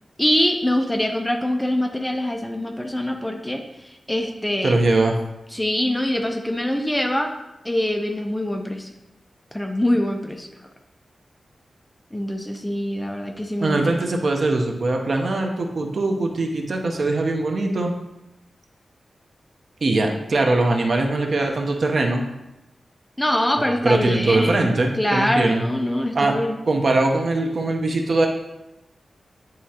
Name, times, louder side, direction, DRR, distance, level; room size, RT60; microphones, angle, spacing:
voice 1, 0.2-4.8 5.5-7.3 7.6-8.9 9.5-10.5 12.1-14.0 23.2-24.7 25.0-26.5, left 1 dB, 10° left, 3 dB, 0.5 m, -24 dB
voice 2, 4.6-5.2 13.6-17.9 19.8-22.2 23.8-25.7 26.1-26.4 26.7-28.3, right 2 dB, 50° right, 2 dB, 0.7 m, -21 dB
9.3 x 3.8 x 2.8 m, 0.94 s
wide cardioid pair, 160°, 0 cm